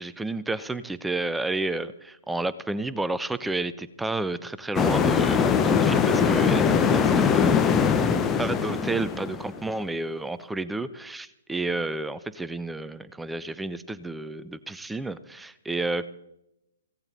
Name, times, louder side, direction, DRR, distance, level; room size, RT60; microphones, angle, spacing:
voice 1, 0.0-16.1, right 2 dB, 5° right, 15 dB, 0.5 m, -31 dB
sound 1, 4.7-9.6, left 6 dB, 15° left, 1.0 m, -22 dB
16.5 x 16.0 x 4.1 m, 0.84 s
figure-of-eight pair, 120°, 0 cm